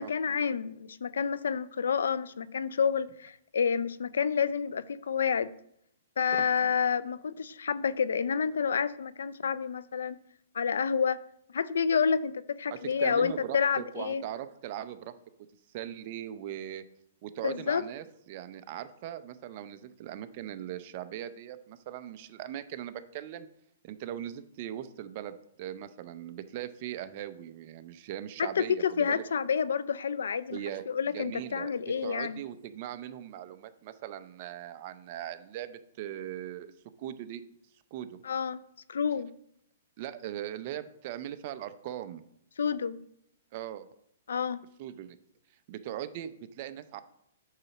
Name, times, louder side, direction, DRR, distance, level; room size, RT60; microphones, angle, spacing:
voice 1, 0.0-5.5 6.2-10.2 10.5-11.2 11.5-14.2 17.4-17.8 28.4-30.6 30.9-32.4 38.2-38.6 38.9-39.3 42.6-43.0 44.3-44.6, left 6 dB, 85° left, 0.4 m, -29 dB
voice 2, 12.7-15.1 15.7-16.8 17.2-23.5 23.8-29.3 30.5-36.7 37.0-37.4 37.9-38.2 40.0-42.2 43.5-43.9 44.8-45.2 45.7-47.0, right 11 dB, 40° right, 0.6 m, -40 dB
8.7 x 4.0 x 5.9 m
hypercardioid pair, 150°, 0 cm